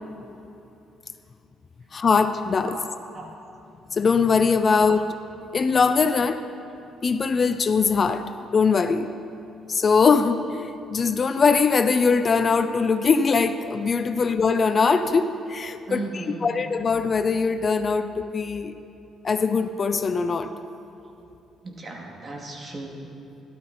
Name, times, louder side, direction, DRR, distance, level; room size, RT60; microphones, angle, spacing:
voice 1, 1.9-2.8 3.9-5.0 5.5-6.4 7.0-9.1 9.7-18.7 19.2-20.5, left 5 dB, 45° left, 10 dB, 0.6 m, -21 dB
voice 2, 2.6-3.3 4.7-5.0 6.2-6.4 14.1-14.3 15.9-16.6 21.0-21.1 21.6-23.0, right 2 dB, 40° right, 0 dB, 2.5 m, -37 dB
13.5 x 12.0 x 4.4 m, 2.9 s
supercardioid pair, 65°, 0 cm